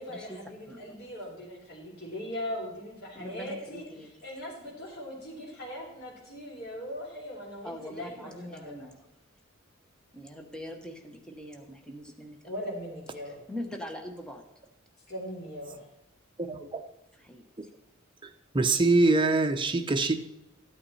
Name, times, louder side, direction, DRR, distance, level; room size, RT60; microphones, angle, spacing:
voice 1, 0.0-3.8 4.2-8.9 12.4-13.4 15.1-15.8, equal, 50° left, -5 dB, 3.0 m, -40 dB
voice 2, 3.1-4.1 7.6-9.0 10.1-12.4 13.5-14.4 17.1-17.4, left 1 dB, 5° left, 3 dB, 1.1 m, -42 dB
voice 3, 16.5-16.8 18.5-20.2, right 3 dB, 25° right, 6 dB, 0.7 m, -24 dB
13.5 x 8.6 x 4.2 m, 0.91 s
head